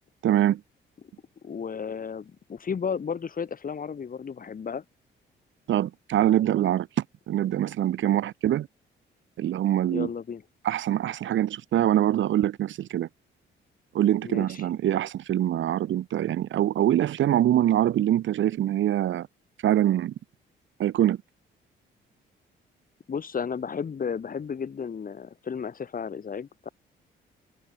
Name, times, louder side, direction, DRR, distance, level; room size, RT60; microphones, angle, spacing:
voice 1, 0.2-0.6 5.7-6.9 7.3-8.7 9.4-10.1 10.6-13.1 13.9-19.3 19.6-20.1 20.8-21.2, right 12 dB, 75° right, 4.1 m, -24 dB
voice 2, 1.4-4.8 8.0-8.2 9.9-10.4 14.2-14.6 23.1-26.7, left 6 dB, 45° left, 6.9 m, -33 dB
cardioid pair, 90°, 20 cm